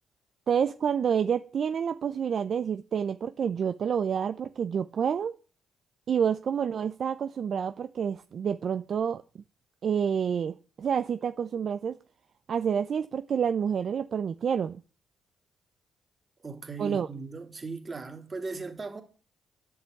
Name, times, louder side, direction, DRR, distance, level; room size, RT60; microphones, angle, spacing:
voice 1, 0.5-5.4 6.1-9.2 9.8-12.0 12.5-14.8 16.8-17.1, right 7 dB, 55° right, 0.7 m, -28 dB
voice 2, 16.4-19.0, right 4 dB, 30° right, 3.2 m, -38 dB
11.0 x 8.1 x 8.5 m
cardioid pair, 90°, 0 cm